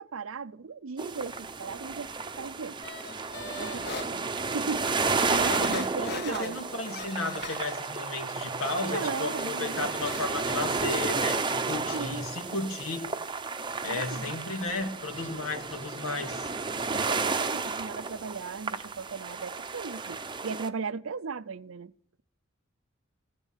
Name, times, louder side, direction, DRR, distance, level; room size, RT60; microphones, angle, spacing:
voice 1, 0.0-2.1 2.4-2.8 3.4-6.6 8.8-9.9 11.9-12.2 13.9-14.3 16.9-21.9, right 5 dB, 70° right, 0.6 m, -37 dB
sound 1, 1.0-20.7, right 4 dB, 25° right, 0.8 m, -32 dB
sound 2, 2.8-4.1 4.6-4.7 5.1-8.0 8.4-11.5 11.7-12.1 12.4-12.5, left 4 dB, 55° left, 1.5 m, -42 dB
voice 2, 5.4-13.0 13.8-16.5, left 3 dB, 80° left, 2.5 m, -34 dB
16.5 x 11.0 x 7.3 m
head